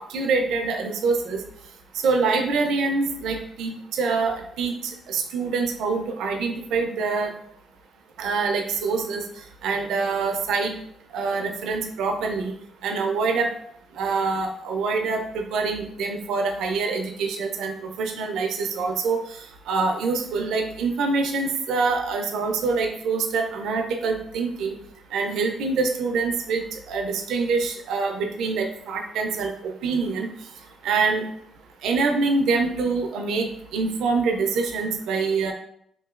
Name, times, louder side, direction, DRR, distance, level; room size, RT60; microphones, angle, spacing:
voice 1, 0.1-1.4 2.0-7.3 8.2-9.2 9.6-10.8 11.1-12.5 12.8-13.5 14.0-19.2 19.7-24.8 25.1-30.3 30.8-31.3 31.8-35.5, right 4 dB, 80° right, 3 dB, 0.4 m, -25 dB
2.9 x 2.7 x 2.4 m, 0.68 s
cardioid pair, 90°, 0 cm